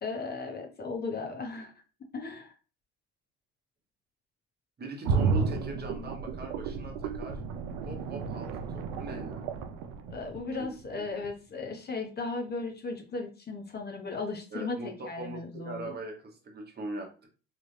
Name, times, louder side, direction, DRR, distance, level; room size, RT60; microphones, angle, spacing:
voice 1, 0.0-1.7 2.1-2.5 10.1-15.9, left 3 dB, 30° left, 3 dB, 0.8 m, -36 dB
voice 2, 4.8-7.4 7.8-9.4 10.9-11.3 14.5-15.4 15.6-17.3, right 2 dB, 30° right, 2 dB, 1.0 m, -41 dB
sound 1, 5.0-10.9 11.2-11.3, right 5 dB, 75° right, 0.6 m, -32 dB
3.2 x 2.4 x 3.2 m, 0.36 s
supercardioid pair, 85°, 30 cm